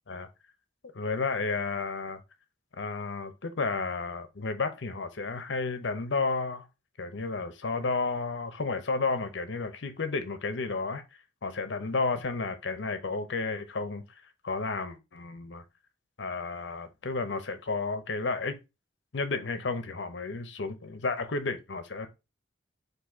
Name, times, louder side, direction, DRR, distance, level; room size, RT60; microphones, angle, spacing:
voice 1, 0.9-2.2 2.8-6.7 7.0-11.0 11.4-14.0 14.4-15.6 16.2-18.6 19.1-22.1, left 3 dB, 65° left, 0.7 m, -32 dB
4.0 x 2.6 x 4.7 m
head